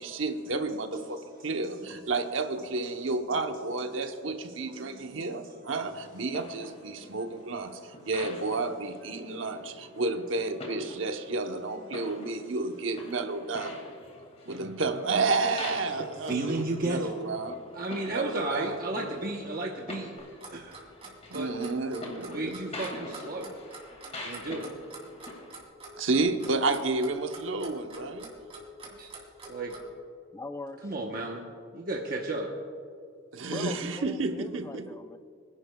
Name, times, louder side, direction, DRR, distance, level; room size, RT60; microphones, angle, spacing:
voice 1, 0.0-13.8 14.5-17.6 18.1-18.7 19.1-19.2 21.3-22.6 26.0-28.4 33.3-34.9, right 3 dB, 85° right, 0.9 m, -31 dB
voice 2, 1.2-2.0 2.8-3.1 3.9-6.2 6.9-8.1 9.2-10.0 10.9-11.0 11.6-12.5 14.4-14.7 16.0-17.1 17.7-20.1 20.5-20.8 21.3-21.5 22.1-23.5 24.2-24.7 29.0-29.1 29.4-29.8 30.8-32.5, right 2 dB, 50° right, 1.0 m, -36 dB
sound 1, 5.8-25.7, left 1 dB, 35° left, 2.0 m, -45 dB
Clock, 20.2-29.9, right 3 dB, 30° right, 2.9 m, -46 dB
voice 3, 30.3-30.8 33.5-35.2, left 2 dB, 15° left, 0.5 m, -41 dB
24.5 x 11.0 x 2.3 m
head